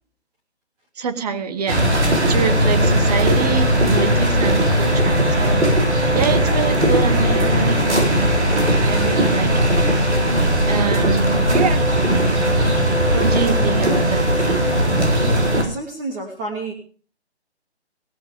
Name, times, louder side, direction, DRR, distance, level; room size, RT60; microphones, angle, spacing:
voice 1, 1.0-5.7 6.1-10.1 10.7-11.9 13.1-14.6, right 6 dB, 35° right, 11 dB, 1.6 m, -26 dB
sound 1, 1.7-15.6, equal, 85° right, 7.7 m, -18 dB
voice 2, 15.2-16.7, right 3 dB, 20° right, 0 dB, 2.8 m, -31 dB
18.0 x 15.0 x 3.7 m, 0.41 s
figure-of-eight pair, 150°, 34 cm